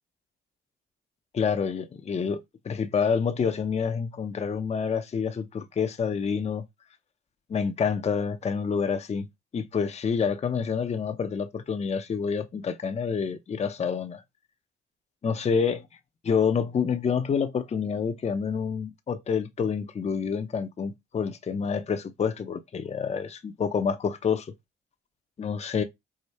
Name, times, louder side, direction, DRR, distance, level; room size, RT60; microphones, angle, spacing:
voice 1, 1.3-2.4 2.6-6.6 7.5-9.3 9.5-14.2 15.2-15.9 16.2-24.5 25.4-25.8, left 6 dB, 35° left, 0.7 m, -28 dB
4.9 x 2.1 x 4.1 m
cardioid pair, 90°, 20 cm